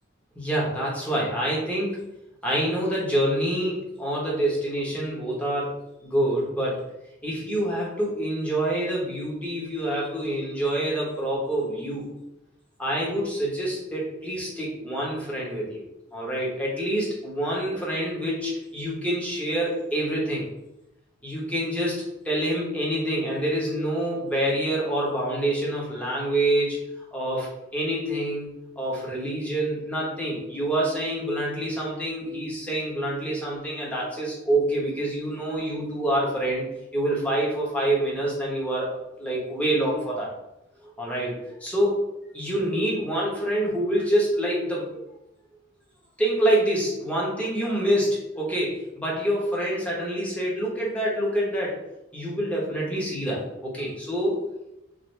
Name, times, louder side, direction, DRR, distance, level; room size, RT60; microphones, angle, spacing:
voice 1, 0.3-2.0 2.4-5.7 6.0-6.8 7.2-12.0 12.8-15.8 16.1-20.5 21.2-26.8 27.1-40.3 40.8-42.0 42.3-45.1 46.2-51.7 52.1-54.4, right 1 dB, 5° left, -5 dB, 1.1 m, -26 dB
4.1 x 2.7 x 3.2 m, 0.89 s
head